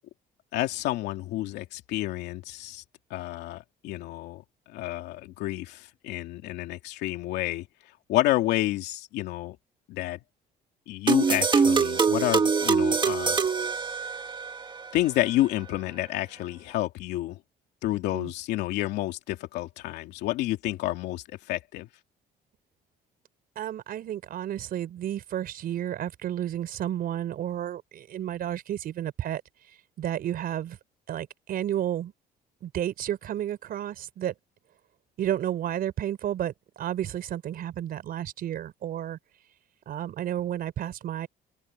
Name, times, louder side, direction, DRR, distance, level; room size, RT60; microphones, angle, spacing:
voice 1, 0.5-2.8 3.1-7.7 8.1-9.6 9.9-10.2 10.9-13.4 14.9-17.4 17.8-21.9, left 16 dB, 85° left, 2.7 m, -29 dB
sound 1, 11.1-14.5, right 5 dB, 30° right, 1.9 m, -23 dB
voice 2, 23.6-29.4 30.0-30.8 31.1-32.1 32.6-34.3 35.2-39.2 39.9-41.3, right 11 dB, 60° right, 4.5 m, -31 dB
cardioid pair, 110°, 17 cm